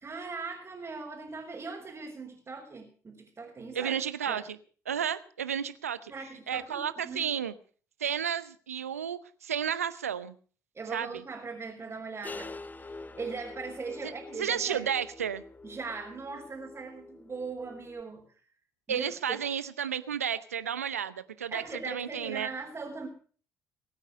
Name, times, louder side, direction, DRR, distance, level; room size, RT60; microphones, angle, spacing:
voice 1, 0.0-4.4 6.1-7.3 10.7-14.9 15.6-18.2 18.9-19.4 21.5-23.1, right 4 dB, 35° right, -2 dB, 4.7 m, -40 dB
voice 2, 3.7-4.4 4.9-6.1 6.5-7.5 8.0-10.3 10.9-11.2 14.0-14.1 14.4-15.4 18.9-22.5, right 8 dB, 90° right, 15 dB, 0.7 m, -32 dB
sound 1, 12.2-18.0, left 3 dB, 20° left, 0.9 m, -46 dB
21.0 x 9.0 x 6.6 m, 0.43 s
hypercardioid pair, 50°, 8 cm